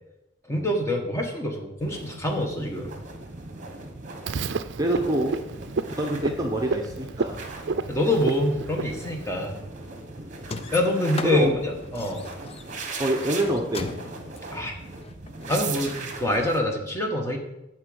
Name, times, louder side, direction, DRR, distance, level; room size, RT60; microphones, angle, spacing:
voice 1, 0.5-2.9 7.9-9.6 10.7-12.2 14.5-14.8 15.5-15.9 16.2-17.4, left 1 dB, 15° left, 1 dB, 1.4 m, -25 dB
sound 1, 1.8-16.6, right 3 dB, 40° right, 1.3 m, -39 dB
Frog, 4.3-9.5, right 4 dB, 60° right, 0.4 m, -31 dB
voice 2, 4.8-5.4 6.0-7.4 10.2-10.4 11.2-11.5 13.0-13.9, right 1 dB, 20° right, 1 dB, 0.9 m, -26 dB
sound 2, 10.4-15.6, left 3 dB, 30° left, 0.5 m, -38 dB
10.0 x 4.6 x 7.8 m, 0.94 s
head